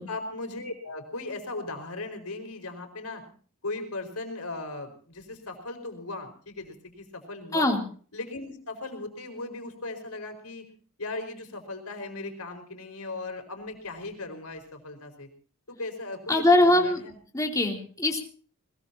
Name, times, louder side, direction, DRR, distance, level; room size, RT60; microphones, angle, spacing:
voice 1, 0.1-3.2 3.6-7.7 8.1-10.6 11.0-15.3 15.7-17.1, left 2 dB, 75° left, 6 dB, 4.8 m, -37 dB
voice 2, 16.3-17.0 17.3-18.2, left 1 dB, 15° left, 1 dB, 3.3 m, -22 dB
21.5 x 21.0 x 2.9 m, 0.43 s
head